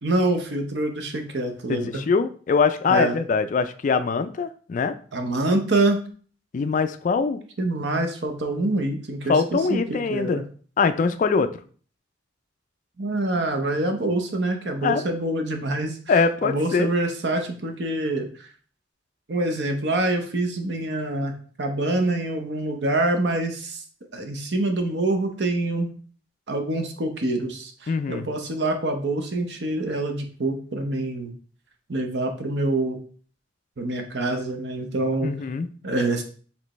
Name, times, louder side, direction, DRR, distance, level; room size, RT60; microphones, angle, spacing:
voice 1, 0.0-2.0 2.8-3.2 5.1-6.0 7.6-10.4 13.0-18.5 19.3-21.3 21.6-23.8 24.1-25.9 26.5-31.3 31.9-33.0 33.8-35.3 35.8-36.2, right 2 dB, 60° right, 5 dB, 0.8 m, -26 dB
voice 2, 1.7-4.9 6.5-7.4 9.3-10.4 10.8-11.5 14.8-15.0 16.1-16.9 27.9-28.3 35.2-35.7, left 5 dB, 40° left, 10 dB, 0.3 m, -23 dB
5.1 x 3.4 x 3.0 m, 0.43 s
head